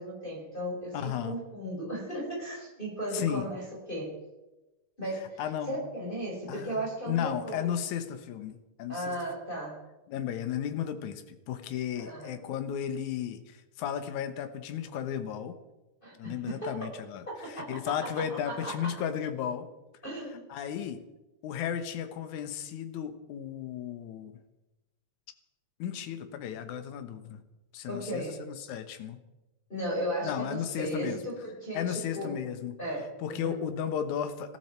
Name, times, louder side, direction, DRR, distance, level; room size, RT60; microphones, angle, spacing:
voice 1, 0.0-4.2 5.0-7.7 8.9-9.8 12.0-12.3 16.0-17.0 17.3-17.8 18.4-18.9 20.0-20.4 27.9-28.4 29.7-32.4 32.8-33.6, right 1 dB, 15° left, -4 dB, 4.8 m, -36 dB
voice 2, 0.9-1.4 3.1-3.4 5.4-5.8 6.5-9.2 10.1-15.6 16.1-19.7 20.5-21.0 21.4-24.4 25.8-27.4 27.7-29.2 30.2-31.2 31.7-32.7 33.2-34.6, left 9 dB, 70° left, 9 dB, 2.6 m, -34 dB
20.5 x 14.5 x 4.5 m, 1.0 s
omnidirectional pair, 3.7 m